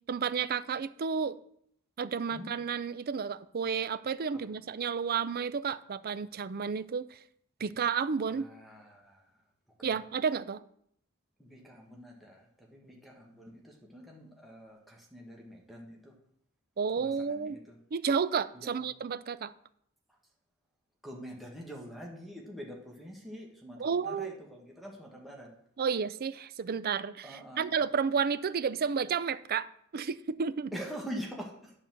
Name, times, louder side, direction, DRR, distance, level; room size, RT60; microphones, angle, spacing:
voice 1, 0.1-1.4 2.0-7.2 7.6-8.5 9.8-10.6 16.8-17.6 17.9-19.5 23.8-24.3 25.8-30.7, right 6 dB, 45° right, 15 dB, 0.4 m, -31 dB
voice 2, 8.3-9.2 9.8-10.0 11.4-16.1 17.0-17.8 18.5-18.9 21.0-25.5 27.2-27.8 30.7-31.7, equal, ahead, -2 dB, 1.6 m, -45 dB
10.0 x 4.2 x 7.5 m, 0.69 s
head